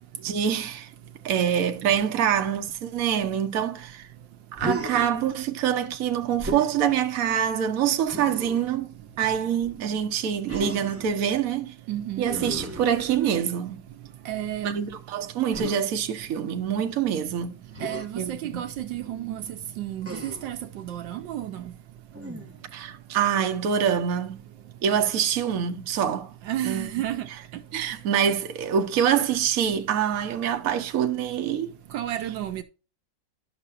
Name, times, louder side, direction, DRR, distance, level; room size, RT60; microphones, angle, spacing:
voice 1, 0.2-0.9 1.2-4.1 4.5-11.7 12.2-13.8 14.6-17.6 18.2-18.5 22.7-24.4 24.8-26.3 26.6-26.9 27.7-31.7, right 8 dB, 55° right, 1.2 m, -25 dB
Human voice, 4.5-5.2 6.4-6.8 8.1-8.7 10.5-11.1 12.2-13.5 15.5-15.8 17.7-18.1 20.0-20.6 22.1-22.7, equal, 10° right, 0.8 m, -34 dB
voice 2, 11.9-12.3 14.3-14.7 17.8-20.6 20.8-21.6 26.5-27.3 31.9-32.6, right 12 dB, 75° right, 1.3 m, -31 dB
11.0 x 6.6 x 2.5 m
omnidirectional pair, 2.1 m